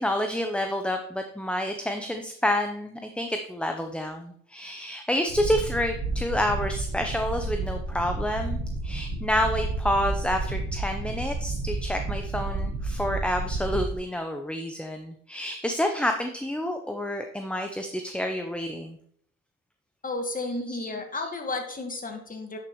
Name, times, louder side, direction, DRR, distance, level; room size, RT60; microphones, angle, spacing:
voice 1, 0.0-19.0 20.5-21.3, left 1 dB, 5° left, 5 dB, 0.6 m, -29 dB
sound 1, 5.3-14.0, right 3 dB, 90° right, 1.2 m, -31 dB
voice 2, 20.0-22.6, left 2 dB, 25° left, 4 dB, 1.6 m, -32 dB
10.0 x 6.1 x 3.0 m, 0.65 s
cardioid pair, 90°, 30 cm